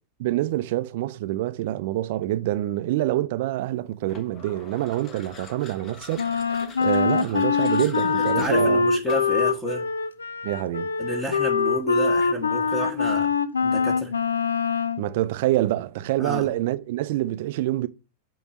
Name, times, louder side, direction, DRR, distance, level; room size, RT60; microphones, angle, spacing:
voice 1, 0.2-6.3 6.8-8.8 10.4-10.9 15.0-17.9, right 15 dB, 50° right, 0.6 m, -26 dB
sound 1, 4.1-9.4, left 4 dB, 30° left, 1.6 m, -44 dB
Wind instrument woodwind instrument, 6.2-15.0, left 5 dB, 75° left, 0.4 m, -23 dB
voice 2, 8.4-9.9 11.0-13.3 13.6-14.1 16.2-16.5, right 1 dB, 10° left, 1.4 m, -30 dB
8.5 x 3.1 x 6.0 m
figure-of-eight pair, 90°, 0 cm